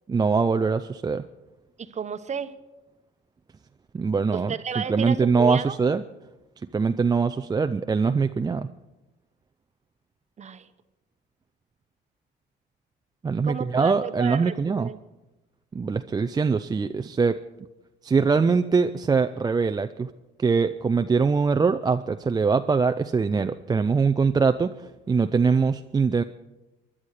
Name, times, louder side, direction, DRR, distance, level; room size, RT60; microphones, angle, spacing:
voice 1, 0.1-1.2 3.9-6.0 6.7-8.7 13.2-14.9 15.7-17.4 18.0-20.1 20.4-26.2, right 5 dB, 20° right, 8 dB, 0.4 m, -23 dB
voice 2, 1.8-2.5 4.3-5.8 10.4-10.7 13.4-15.0, right 6 dB, 35° right, 11 dB, 1.0 m, -32 dB
24.5 x 11.0 x 4.9 m, 1.0 s
cardioid pair, 100°, 21 cm